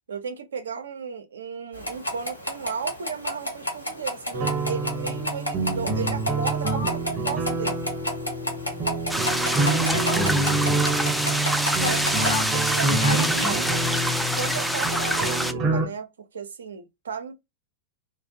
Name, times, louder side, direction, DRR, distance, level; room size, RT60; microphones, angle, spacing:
voice 1, 0.1-7.9 11.9-13.1 13.4-13.9 14.4-17.3, right 6 dB, 70° right, 0.5 m, -35 dB
sound 1, 1.7-12.4, equal, 85° left, 0.9 m, -32 dB
sound 2, 4.3-15.9, right 3 dB, 30° right, 0.7 m, -27 dB
voice 2, 6.6-7.3 9.5-10.9 11.8-13.7 14.9-15.6, left 5 dB, 60° left, 0.6 m, -34 dB
sound 3, 9.1-15.5, equal, ahead, 0.3 m, -26 dB
2.4 x 2.0 x 2.6 m
figure-of-eight pair, 90°, 0 cm